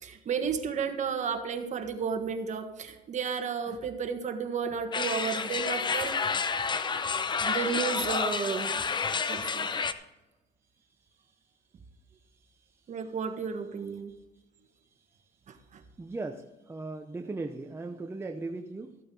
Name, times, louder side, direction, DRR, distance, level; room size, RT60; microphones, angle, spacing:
voice 1, 0.0-6.2 7.4-8.7 9.3-9.7 12.9-14.1 15.5-15.8, right 6 dB, 45° right, 1.5 m, -32 dB
sound 1, 4.9-9.9, left 5 dB, 25° left, 0.7 m, -30 dB
voice 2, 12.1-12.6 14.1-14.2 16.0-19.0, right 3 dB, 15° right, 0.7 m, -38 dB
14.0 x 8.5 x 3.9 m
cardioid pair, 110°, 17 cm